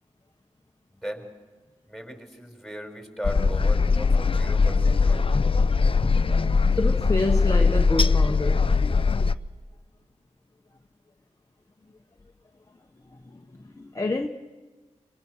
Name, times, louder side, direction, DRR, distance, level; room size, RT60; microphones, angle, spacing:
voice 1, 0.9-1.2 1.9-5.2, equal, ahead, 5.1 m, -37 dB
Ships Restaurant, 3.2-9.3, left 4 dB, 45° left, 0.7 m, -21 dB
voice 2, 6.7-8.9 13.1-14.3, left 2 dB, 25° left, 1.2 m, -29 dB
26.5 x 24.5 x 6.4 m
wide cardioid pair, 80°, 13 cm